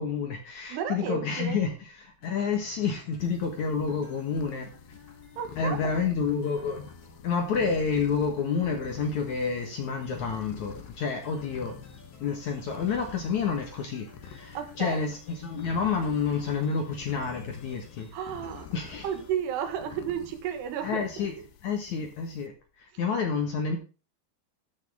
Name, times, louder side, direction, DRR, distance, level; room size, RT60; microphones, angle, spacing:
voice 1, 0.0-1.7 2.0-4.7 5.6-6.9 7.2-11.8 12.2-18.1 18.7-19.1 20.8-21.3 21.6-23.8, left 5 dB, 60° left, 4 dB, 2.2 m, -29 dB
voice 2, 0.7-1.6 5.4-6.1 14.6-15.0 18.1-18.7 19.0-21.3, right 8 dB, 75° right, 7 dB, 3.4 m, -33 dB
sound 1, 2.2-19.3, left 3 dB, 30° left, 3.2 m, -54 dB
sound 2, 3.2-22.5, left 8 dB, 80° left, 3.4 m, -48 dB
13.0 x 7.2 x 3.6 m, 0.33 s
omnidirectional pair, 4.9 m